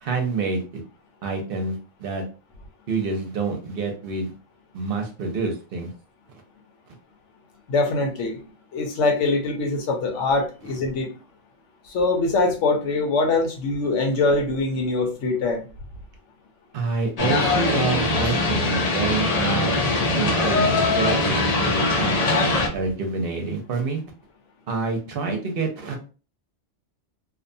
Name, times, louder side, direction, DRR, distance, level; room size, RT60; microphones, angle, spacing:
voice 1, 0.0-0.6 1.2-2.2 2.9-4.3 4.7-5.9 16.7-19.8 20.2-22.3 22.7-24.0 24.7-26.0, right 4 dB, 60° right, 3 dB, 0.7 m, -27 dB
voice 2, 7.7-8.4 8.7-11.1 11.8-15.6, left 3 dB, 75° left, 3 dB, 1.0 m, -23 dB
sound 1, 17.2-22.7, left 2 dB, 55° left, 0.4 m, -22 dB
2.6 x 2.1 x 2.6 m, 0.35 s
omnidirectional pair, 1.2 m